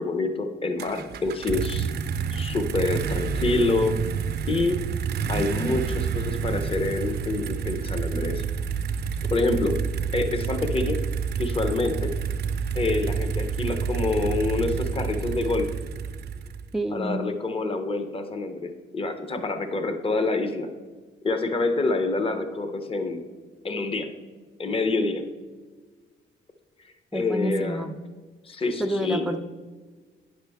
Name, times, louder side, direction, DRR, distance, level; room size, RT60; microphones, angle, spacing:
voice 1, 0.0-1.9 2.3-4.0 4.5-4.8 5.3-8.4 9.3-9.8 10.1-11.0 11.4-12.2 12.8-15.7 16.9-20.7 21.2-23.2 23.6-24.1 24.6-25.2 27.1-27.9 28.4-29.3, left 3 dB, 30° left, 8 dB, 0.7 m, -27 dB
sound 1, 0.8-16.8, right 6 dB, 55° right, 0.5 m, -29 dB
voice 2, 16.7-17.3 27.1-27.9 28.8-29.4, right 1 dB, ahead, 5 dB, 0.4 m, -28 dB
9.1 x 6.6 x 3.4 m, 1.4 s
cardioid pair, 90°, 20 cm